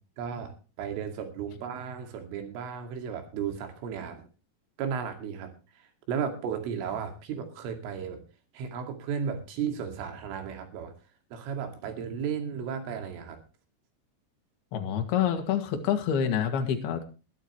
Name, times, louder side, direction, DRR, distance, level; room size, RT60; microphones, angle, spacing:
voice 1, 0.2-4.2 4.8-5.5 6.1-8.2 8.5-10.9 11.3-13.4, right 7 dB, 70° right, 5 dB, 4.7 m, -34 dB
voice 2, 14.7-17.0, left 8 dB, 55° left, 5 dB, 3.6 m, -27 dB
21.5 x 11.5 x 3.1 m, 0.33 s
omnidirectional pair, 6.0 m